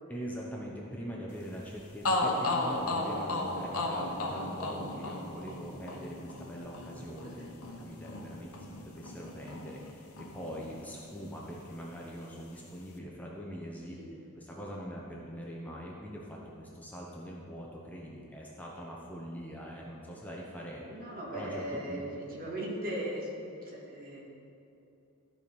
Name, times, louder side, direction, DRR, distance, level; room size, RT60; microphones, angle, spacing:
voice 1, 0.1-7.5 7.8-14.0 14.3-20.9 21.3-22.0, equal, 5° left, -3 dB, 0.9 m, -42 dB
sound 1, 1.6-1.7 2.0-9.9 10.2-11.3, left 2 dB, 80° left, 1.1 m, -35 dB
voice 2, 7.0-7.5 14.0-14.1 20.8-24.2, right 1 dB, 45° right, -4 dB, 2.1 m, -38 dB
14.0 x 4.8 x 5.4 m, 2.8 s
head